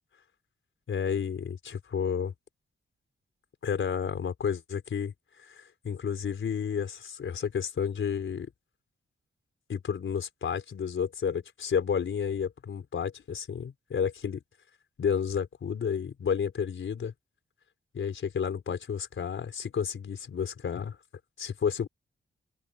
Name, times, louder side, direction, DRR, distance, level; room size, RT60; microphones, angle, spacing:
voice 1, 0.9-2.3 3.6-5.1 5.4-8.5 9.7-14.4 15.0-17.1 17.9-21.0 21.4-21.9, left 7 dB, 70° left, 4.5 m, -31 dB
open air
wide cardioid pair, 105°, 21 cm